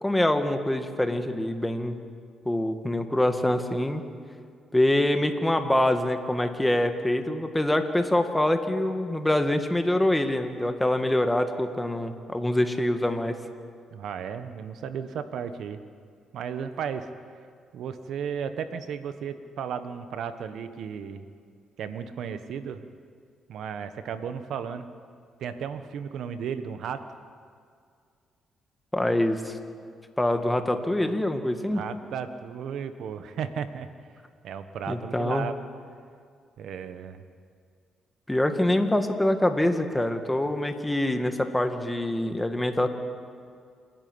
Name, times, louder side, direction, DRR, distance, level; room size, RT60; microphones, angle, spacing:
voice 1, 0.0-2.0 2.5-4.0 4.7-13.4 28.9-29.6 30.2-31.8 34.9-35.5 38.3-42.9, left 1 dB, 10° left, 6 dB, 1.8 m, -25 dB
voice 2, 13.9-15.8 16.3-17.1 17.7-21.3 21.8-22.8 23.5-24.9 25.4-27.0 31.7-33.9 34.4-35.5 36.6-37.2, right 7 dB, 75° right, 10 dB, 1.3 m, -34 dB
28.0 x 11.0 x 9.7 m, 2.2 s
cardioid pair, 90°, 0 cm